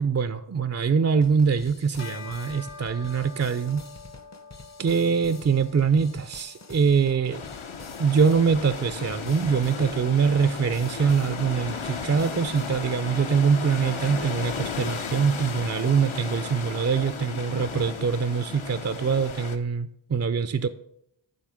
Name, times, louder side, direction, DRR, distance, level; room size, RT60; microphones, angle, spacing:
voice 1, 0.0-3.9 4.8-7.4 8.0-20.7, right 6 dB, 35° right, 12 dB, 0.4 m, -24 dB
sound 1, 1.2-12.9, left 3 dB, 35° left, 0.6 m, -47 dB
Bell, 2.0-11.7, left 4 dB, 90° left, 1.1 m, -48 dB
sound 2, 7.3-19.6, left 5 dB, 70° left, 0.8 m, -35 dB
9.5 x 3.7 x 6.3 m, 0.74 s
wide cardioid pair, 65°, 49 cm